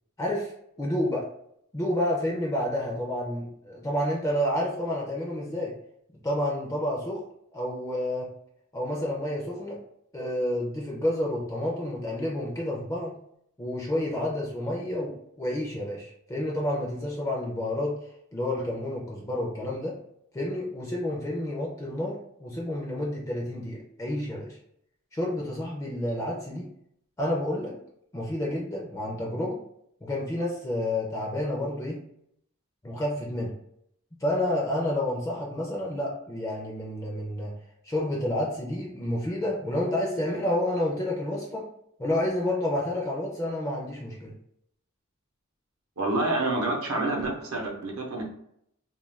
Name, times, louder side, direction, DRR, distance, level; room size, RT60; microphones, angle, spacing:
voice 1, 0.2-0.5 0.8-1.3 1.7-5.7 6.2-7.2 7.5-8.3 8.7-9.8 10.1-13.2 13.6-20.0 20.3-24.6 25.1-26.7 27.2-27.7 28.1-29.6 30.0-32.0 32.8-33.5 34.2-37.5 37.8-41.7 42.0-44.4, left 1 dB, 15° left, -3 dB, 0.4 m, -29 dB
voice 2, 46.0-48.2, right 2 dB, 75° right, -1 dB, 0.7 m, -28 dB
2.3 x 2.2 x 3.2 m, 0.72 s
head